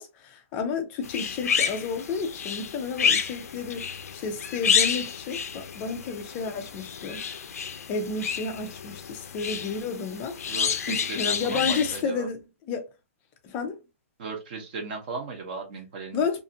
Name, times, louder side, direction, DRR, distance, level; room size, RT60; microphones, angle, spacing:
voice 1, 0.0-7.3 7.9-10.6 10.9-12.9 13.4-13.8 16.1-16.4, left 5 dB, 20° left, 0.4 m, -31 dB
sound 1, 1.0-12.0, left 7 dB, 90° left, 0.4 m, -29 dB
voice 2, 10.5-12.3 14.2-16.4, right 4 dB, 35° right, 0.8 m, -37 dB
2.5 x 2.4 x 2.6 m
hypercardioid pair, 170°, 8 cm